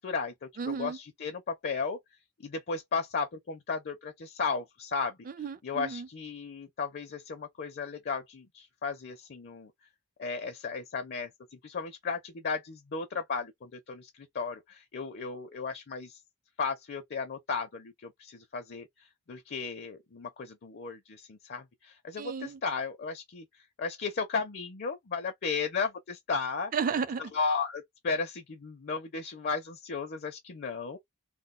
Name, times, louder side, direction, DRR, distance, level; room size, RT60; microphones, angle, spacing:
voice 1, 0.0-2.0 2.4-5.2 5.6-9.7 10.2-11.3 11.6-14.1 14.3-16.2 16.6-18.9 19.3-23.4 23.8-26.7 27.3-31.0, left 5 dB, 45° left, 0.5 m, -34 dB
voice 2, 0.6-1.0 5.3-6.1 22.2-22.6 26.7-27.3, right 6 dB, 40° right, 0.4 m, -33 dB
2.2 x 2.2 x 3.7 m
head